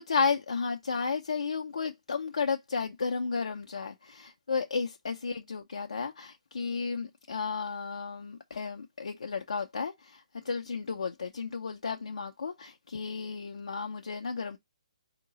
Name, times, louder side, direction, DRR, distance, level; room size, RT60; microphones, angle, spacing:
voice 1, 0.0-14.6, left 5 dB, 65° left, 0.7 m, -33 dB
4.5 x 2.9 x 3.8 m
figure-of-eight pair, 135°, 4 cm